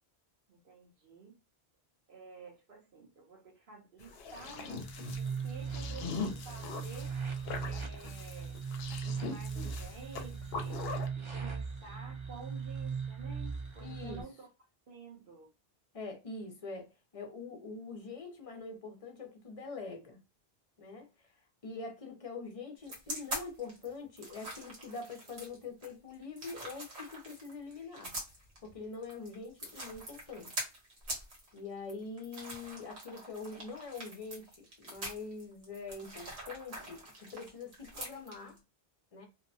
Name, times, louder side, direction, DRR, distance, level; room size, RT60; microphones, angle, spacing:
voice 1, 0.5-1.3 2.1-4.8 5.2-7.2 7.6-8.6 9.2-10.8 11.2-14.5 14.9-15.5, right 4 dB, 60° right, 0.9 m, -51 dB
sound 1, 4.0-11.1, left 4 dB, 70° left, 0.8 m, -42 dB
sound 2, 4.7-14.2, right 6 dB, 35° right, 0.6 m, -39 dB
voice 2, 13.8-14.2 15.9-20.2 20.8-28.2 28.6-30.6 31.5-38.6 39.1-39.3, left 4 dB, 40° left, 0.6 m, -44 dB
sound 3, 22.8-38.6, right 1 dB, 85° right, 1.3 m, -44 dB
2.6 x 2.1 x 2.6 m
omnidirectional pair, 1.1 m